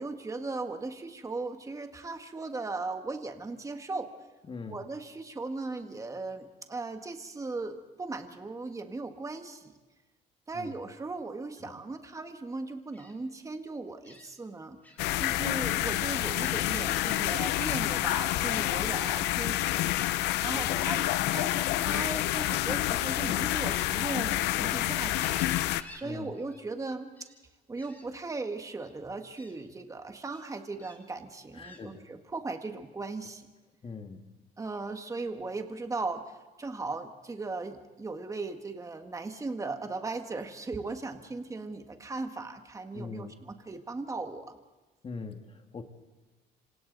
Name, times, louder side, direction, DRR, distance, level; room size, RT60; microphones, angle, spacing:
voice 1, 0.0-4.1 4.7-9.7 10.5-14.8 15.2-19.9 20.4-25.5 25.9-27.1 27.7-33.5 34.6-44.6, right 3 dB, 20° right, 6 dB, 1.7 m, -37 dB
voice 2, 4.5-4.8 10.5-10.8 11.6-11.7 15.3-15.7 20.5-20.9 26.0-26.3 31.5-32.0 33.8-34.3 42.9-43.3 45.0-45.8, left 4 dB, 30° left, 5 dB, 2.0 m, -42 dB
Gull seagull, 12.9-13.1 14.0-14.3 14.8-15.1 15.5-18.3 19.6-20.3 21.2-21.5 23.3-24.6 24.9-26.1 26.3-26.6 26.9-27.4 27.8-28.0 28.8-28.9 29.3-29.5 30.3-31.0 31.6-31.8, left 1 dB, 10° left, 5.1 m, -51 dB
sound 1, 15.0-25.8, left 15 dB, 90° left, 0.7 m, -28 dB
26.5 x 26.5 x 4.1 m, 1.2 s
cardioid pair, 110°, 17 cm